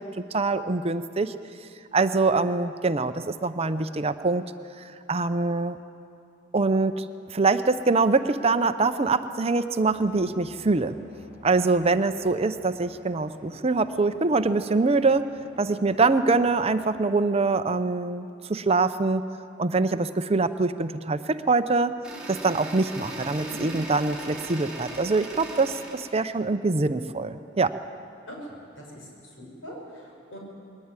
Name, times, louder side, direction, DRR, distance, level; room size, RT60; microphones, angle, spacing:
voice 1, 0.0-1.3 1.9-4.5 4.8-5.8 6.5-7.0 7.3-11.0 11.4-15.3 15.6-19.2 19.6-22.0 22.3-27.8, right 3 dB, 30° right, 11 dB, 0.6 m, -24 dB
sound 1, 9.8-16.7, equal, 45° left, 6.9 m, -51 dB
sound 2, 22.0-26.1, right 2 dB, 5° right, 4.9 m, -38 dB
voice 2, 28.8-29.1 29.4-30.4, equal, 80° left, -1 dB, 6.4 m, -42 dB
21.0 x 18.0 x 9.7 m, 2.6 s
head